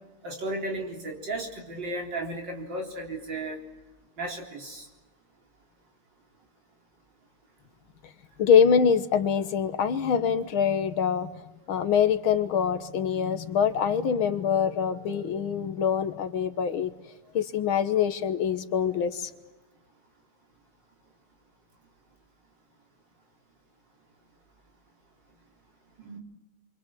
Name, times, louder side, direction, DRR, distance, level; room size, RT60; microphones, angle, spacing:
voice 1, 0.2-3.6 4.2-4.9 26.0-26.2, right 2 dB, 55° right, 1 dB, 4.5 m, -34 dB
voice 2, 8.4-11.3 11.7-16.9 17.3-19.3, left 7 dB, 70° left, 11 dB, 2.0 m, -24 dB
28.5 x 25.5 x 7.6 m, 1.1 s
omnidirectional pair, 2.4 m